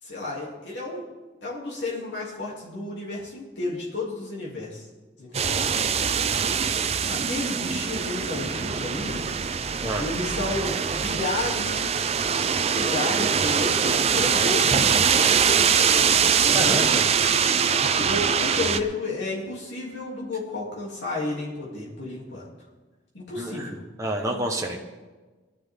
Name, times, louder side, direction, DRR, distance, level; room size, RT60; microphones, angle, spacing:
voice 1, 0.0-1.0 1.4-4.9 5.2-5.6 7.1-9.2 10.0-11.8 12.7-15.2 16.4-16.8 18.0-22.5 23.1-23.8, left 2 dB, 70° left, -6 dB, 3.1 m, -32 dB
sound 1, 5.3-18.8, right 6 dB, 35° right, 0.5 m, -23 dB
voice 2, 16.5-17.0 23.4-23.7 24.0-24.8, right 1 dB, 15° right, 0 dB, 1.2 m, -28 dB
19.0 x 11.5 x 3.8 m, 1.2 s
head